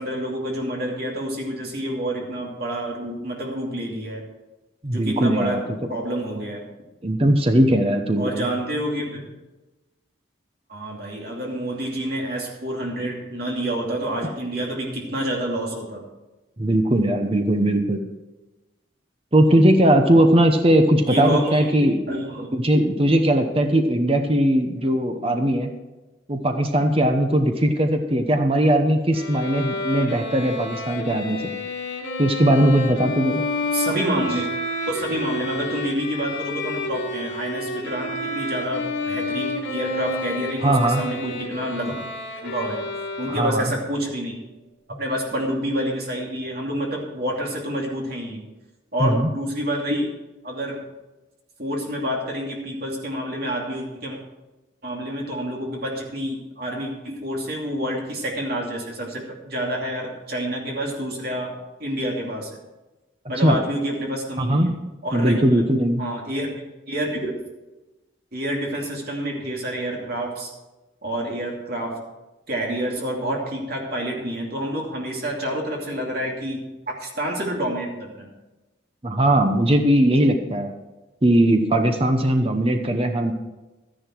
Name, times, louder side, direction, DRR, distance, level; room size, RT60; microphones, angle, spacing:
voice 1, 0.0-4.2 4.9-5.6 5.9-6.6 8.2-9.2 10.7-16.0 21.0-22.5 33.7-34.5 34.9-42.0 42.4-42.8 43.2-44.4 44.9-48.4 48.9-50.1 50.4-50.8 51.6-54.2 54.8-61.5 61.8-62.5 63.3-64.7 65.0-65.6 66.0-66.5 66.9-67.3 68.3-70.5 71.0-72.0 72.5-78.3, equal, 50° right, -1 dB, 2.7 m, -28 dB
voice 2, 4.8-5.6 7.0-8.4 16.6-18.0 19.3-22.0 22.5-25.7 26.3-31.5 32.2-33.4 40.6-41.0 43.3-43.7 49.0-49.3 63.4-63.6 64.4-64.8 65.1-66.0 79.0-80.7 81.2-83.3, right 1 dB, 30° right, 5 dB, 0.9 m, -19 dB
Bowed string instrument, 29.1-43.8, left 2 dB, 75° left, 2.6 m, -30 dB
12.5 x 10.5 x 4.6 m, 1.1 s
head